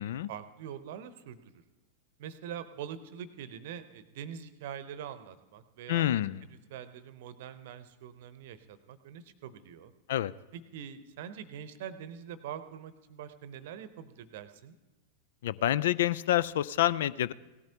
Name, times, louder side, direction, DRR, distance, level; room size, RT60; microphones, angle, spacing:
voice 1, 0.3-1.6 2.2-6.0 6.5-9.9 10.5-14.7, right 9 dB, 55° right, 13 dB, 0.8 m, -44 dB
voice 2, 5.9-6.4 10.1-10.3 15.4-17.3, left 13 dB, 60° left, 19 dB, 0.3 m, -27 dB
18.0 x 13.5 x 2.9 m, 1.1 s
figure-of-eight pair, 90°, 0 cm